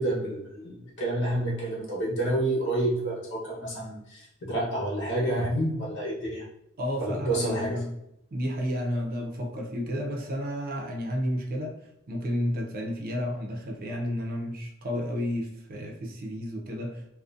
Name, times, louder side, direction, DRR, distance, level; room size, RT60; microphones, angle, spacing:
voice 1, 0.0-6.5 7.0-7.8, right 1 dB, 55° left, -3 dB, 0.9 m, -29 dB
voice 2, 6.8-7.9 8.3-17.1, equal, 45° right, 1 dB, 0.5 m, -31 dB
2.5 x 2.1 x 2.4 m, 0.79 s
head